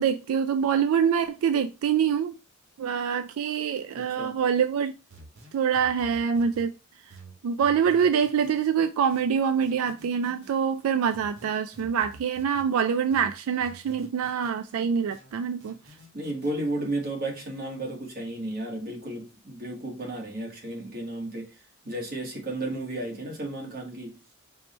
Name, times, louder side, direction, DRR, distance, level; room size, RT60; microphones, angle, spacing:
voice 1, 0.0-2.3 2.8-4.9 5.5-6.7 7.4-15.7, right 7 dB, 90° right, 0.3 m, -25 dB
voice 2, 3.9-4.4 16.1-21.5 21.8-24.2, right 1 dB, 45° right, 1.2 m, -33 dB
sound 1, 5.1-6.7 7.1-8.5 9.1-10.5 11.1-12.7 13.1-14.5 15.1-16.5, right 3 dB, 60° right, 1.3 m, -49 dB
4.5 x 2.1 x 4.0 m
head